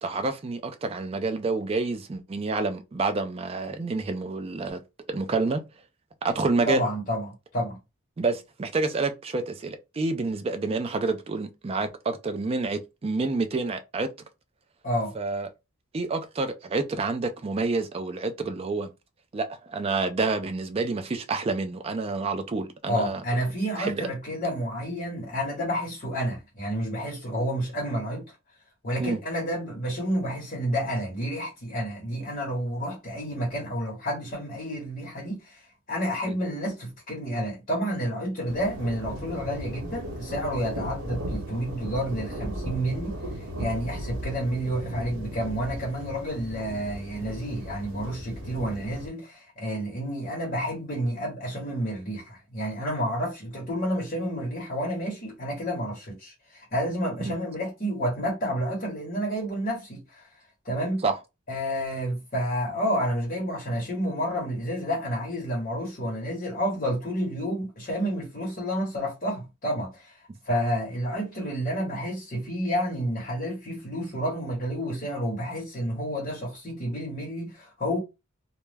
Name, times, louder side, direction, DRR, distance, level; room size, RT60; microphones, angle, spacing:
voice 1, 0.0-4.8 5.1-5.6 6.2-6.8 8.2-14.1 15.2-15.5 15.9-18.9 19.3-23.2 23.8-24.1 29.0-29.2 36.3-36.4 57.3-57.4 61.0-61.2, right 3 dB, 30° right, 0.3 m, -28 dB
voice 2, 6.7-7.8 14.8-15.1 22.9-28.2 28.8-60.3 60.6-61.0 61.5-70.2 70.4-78.0, equal, 40° left, 1.0 m, -30 dB
sound 1, 38.5-49.1, equal, 75° right, 0.9 m, -36 dB
2.2 x 2.0 x 3.2 m
head